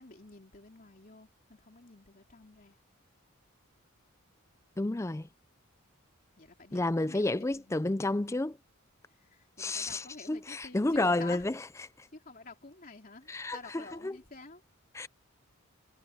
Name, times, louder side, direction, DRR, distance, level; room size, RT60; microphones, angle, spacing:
voice 1, 0.0-2.8 6.4-7.8 9.1-11.5 12.1-14.6, left 3 dB, 40° left, 3.3 m, -49 dB
voice 2, 4.8-5.3 6.7-8.6 9.6-11.5 12.0-12.1 13.3-14.1 14.9-15.1, left 2 dB, 15° left, 0.4 m, -31 dB
head